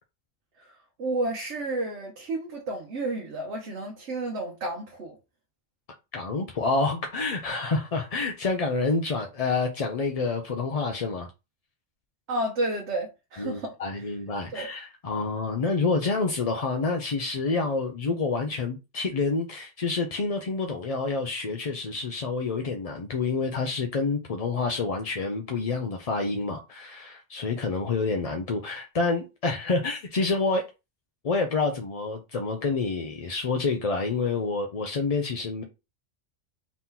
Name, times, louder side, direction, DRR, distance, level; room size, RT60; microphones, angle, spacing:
voice 1, 1.0-5.2 12.3-13.7 14.5-14.7, right 2 dB, 70° right, 1.2 m, -31 dB
voice 2, 6.1-11.3 13.4-30.7 31.2-35.6, left 3 dB, 45° left, 0.5 m, -28 dB
4.2 x 2.8 x 3.7 m
omnidirectional pair, 1.2 m